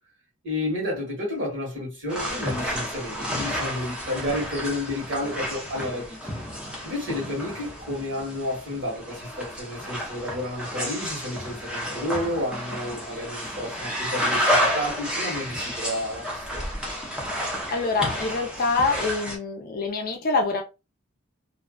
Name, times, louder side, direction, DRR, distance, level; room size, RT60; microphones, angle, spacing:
voice 1, 0.4-6.2 6.8-16.7, left 1 dB, 55° right, 1.4 m, -31 dB
sound 1, 2.1-19.4, equal, 5° right, 0.6 m, -30 dB
voice 2, 17.7-20.6, left 3 dB, 40° left, 0.5 m, -25 dB
2.5 x 2.3 x 2.2 m
head